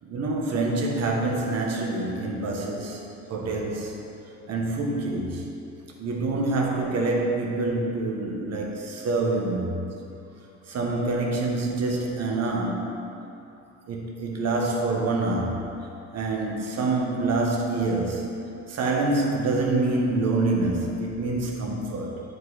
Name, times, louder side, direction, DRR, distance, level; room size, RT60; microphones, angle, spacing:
voice 1, 0.0-3.0 3.3-4.0 4.5-5.5 6.0-10.0 10.7-13.0 13.9-18.4 18.7-22.2, right 2 dB, 60° right, -1 dB, 1.2 m, -26 dB
9.2 x 5.3 x 4.0 m, 2.8 s
cardioid pair, 90°, 30 cm